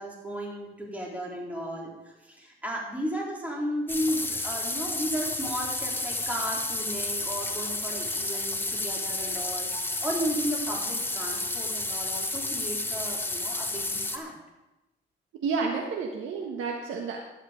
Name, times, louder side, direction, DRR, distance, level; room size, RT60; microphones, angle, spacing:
voice 1, 0.0-9.7 10.0-14.3, equal, 5° right, -3 dB, 4.0 m, -34 dB
sound 1, 3.9-14.2, left 2 dB, 10° left, 1.2 m, -31 dB
voice 2, 15.4-17.2, right 5 dB, 85° right, 1 dB, 1.5 m, -30 dB
12.5 x 10.5 x 5.2 m, 1.0 s
cardioid pair, 90°, 20 cm